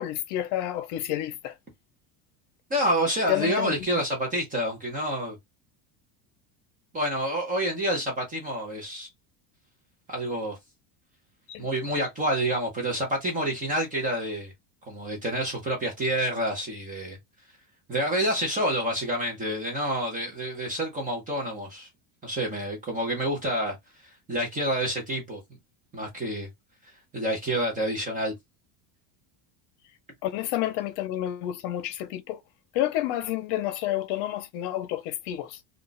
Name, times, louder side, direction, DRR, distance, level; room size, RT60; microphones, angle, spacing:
voice 1, 0.0-1.5 3.3-3.9 11.5-11.7 30.2-32.4 32.7-35.6, left 13 dB, 55° left, 0.8 m, -29 dB
voice 2, 2.7-5.4 6.9-9.1 10.1-10.6 11.6-14.5 14.9-17.2 17.9-21.9 22.2-23.8 24.3-25.4 25.9-26.5 27.1-28.3, right 1 dB, 15° right, 0.7 m, -28 dB
2.4 x 2.3 x 3.8 m
cardioid pair, 165°, 48 cm